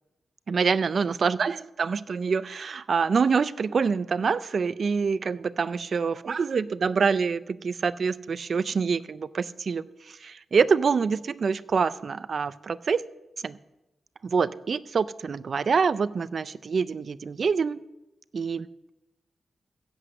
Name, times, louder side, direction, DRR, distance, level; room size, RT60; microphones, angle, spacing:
voice 1, 0.5-13.0 13.4-13.6 14.2-17.8 18.3-18.7, right 5 dB, 60° right, 16 dB, 0.5 m, -26 dB
16.0 x 7.9 x 6.4 m, 0.96 s
cardioid pair, 80°, 0 cm